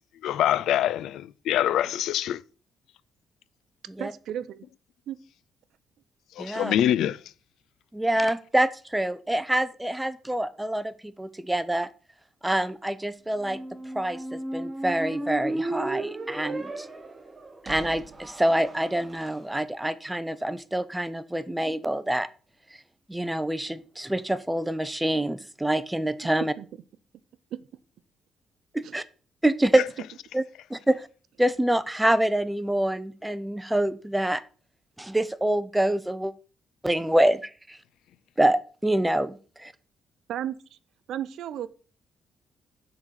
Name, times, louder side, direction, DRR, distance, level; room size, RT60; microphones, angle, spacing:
voice 1, 0.2-2.4 6.4-7.2, left 11 dB, 80° left, 0.3 m, -24 dB
voice 2, 4.0-4.6 5.1-5.2 26.4-26.6 27.5-27.6 28.8-29.0 40.3-40.6 41.1-41.7, right 11 dB, 75° right, 0.5 m, -33 dB
voice 3, 6.4-6.7 7.9-11.9 12.4-13.6 13.9-16.9 17.6-22.3 23.1-26.5 28.7-29.0 29.4-29.8 30.3-30.4 30.7-31.1 31.4-34.4 35.0-36.3 36.8-37.8 38.4-39.7, right 1 dB, 10° right, 0.6 m, -26 dB
Squeak, 13.4-19.3, right 2 dB, 25° right, 1.0 m, -35 dB
7.1 x 3.8 x 6.2 m
cardioid pair, 90°, 0 cm